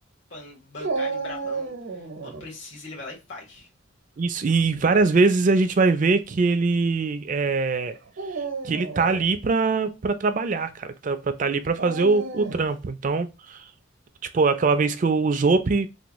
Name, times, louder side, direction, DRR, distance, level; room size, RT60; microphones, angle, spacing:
voice 1, 0.3-3.7, left 2 dB, 70° left, 1.6 m, -41 dB
Dog, 0.8-2.5 4.5-5.0 5.8-5.9 8.1-9.3 11.8-12.8, right 4 dB, 75° right, 0.8 m, -32 dB
voice 2, 4.2-8.0 8.6-13.6 14.3-15.9, right 4 dB, 40° right, 0.4 m, -22 dB
3.4 x 2.3 x 2.9 m
head